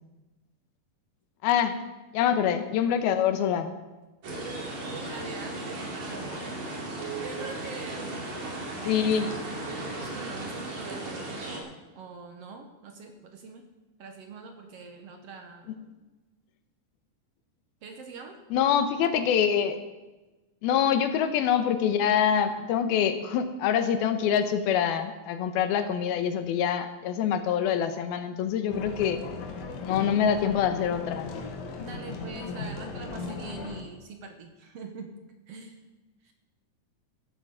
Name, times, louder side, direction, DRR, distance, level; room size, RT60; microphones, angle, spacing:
voice 1, 1.4-1.7 2.1-3.7 8.9-9.3 18.5-19.8 20.6-29.2 29.8-31.4, left 8 dB, 85° left, 9 dB, 2.8 m, -25 dB
sound 1, 4.2-11.6, right 2 dB, 55° right, 3.6 m, -36 dB
voice 2, 4.9-6.6 7.2-8.3 8.7-9.1 9.8-13.7 14.0-15.7 17.8-18.4 31.8-35.1 35.5-35.8 36.2-36.3, right 4 dB, 70° right, 5 dB, 1.5 m, -43 dB
sound 2, 28.7-33.8, left 4 dB, 60° left, 2.5 m, -37 dB
15.0 x 8.2 x 6.9 m, 1.1 s
omnidirectional pair, 4.3 m